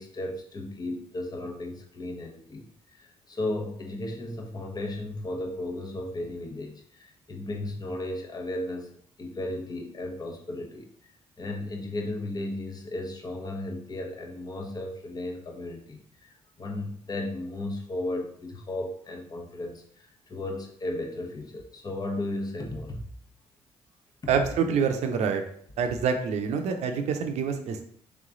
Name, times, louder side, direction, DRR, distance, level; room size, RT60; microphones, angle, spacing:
voice 1, 0.0-8.9 9.2-10.9 11.4-23.0, left 1 dB, 35° left, 1 dB, 1.0 m, -35 dB
voice 2, 24.3-25.4 25.8-27.8, right 6 dB, 70° right, 6 dB, 0.6 m, -26 dB
3.5 x 3.2 x 3.8 m, 0.63 s
supercardioid pair, 65°, 12 cm